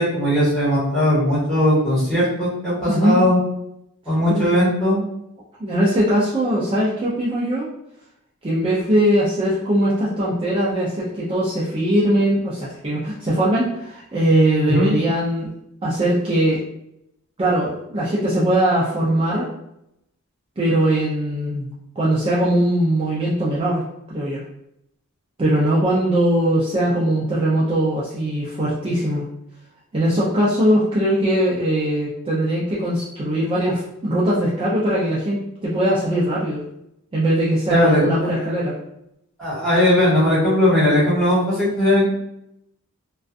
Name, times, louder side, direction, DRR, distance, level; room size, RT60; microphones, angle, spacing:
voice 1, 0.0-3.4 4.1-5.0 14.7-14.9 37.7-38.0 39.4-42.0, left 1 dB, 5° left, -11 dB, 1.2 m, -18 dB
voice 2, 2.9-3.2 4.3-4.4 5.6-7.7 8.4-15.5 15.8-16.6 17.4-19.5 20.6-24.4 25.4-29.3 29.9-36.6 37.1-38.7, right 1 dB, 25° right, -7 dB, 0.4 m, -20 dB
2.5 x 2.3 x 2.3 m, 0.79 s
head